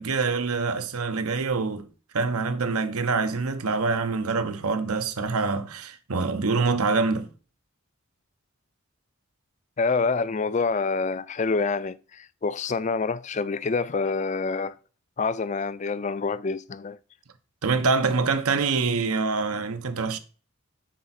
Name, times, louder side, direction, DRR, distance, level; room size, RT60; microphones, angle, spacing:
voice 1, 0.0-1.9 2.1-7.3 17.6-20.2, right 4 dB, 90° right, 0.9 m, -25 dB
voice 2, 9.8-14.8 15.2-17.0, left 4 dB, 30° left, 0.4 m, -27 dB
10.0 x 4.4 x 4.1 m
head